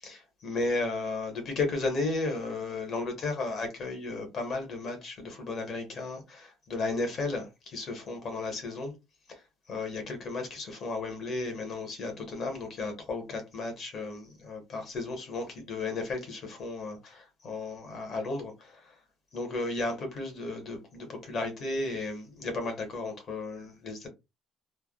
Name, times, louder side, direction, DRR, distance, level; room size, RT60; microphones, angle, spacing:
voice 1, 0.0-8.9 9.3-9.4 9.7-18.9 19.3-24.1, left 3 dB, 40° left, 1.0 m, -34 dB
3.2 x 2.1 x 2.3 m
cardioid pair, 175°, 0 cm